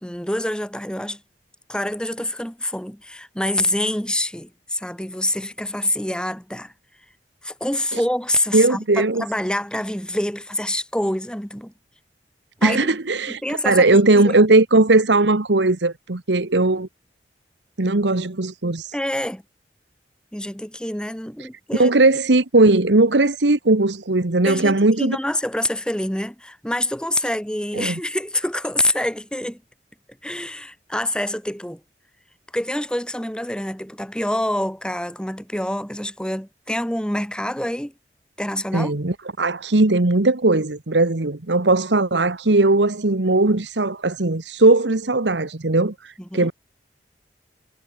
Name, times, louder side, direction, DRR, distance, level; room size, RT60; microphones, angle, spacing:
voice 1, 0.0-1.2 1.7-6.7 7.4-11.7 12.6-12.9 13.3-14.4 18.9-19.4 20.3-21.9 24.4-29.6 30.2-31.8 32.5-37.9 38.4-38.9 46.3-46.5, left 1 dB, 5° left, 2.0 m, -26 dB
voice 2, 8.5-9.2 12.6-16.9 17.8-18.9 21.4-25.2 27.7-27.9 38.7-46.5, right 2 dB, 85° right, 1.4 m, -18 dB
head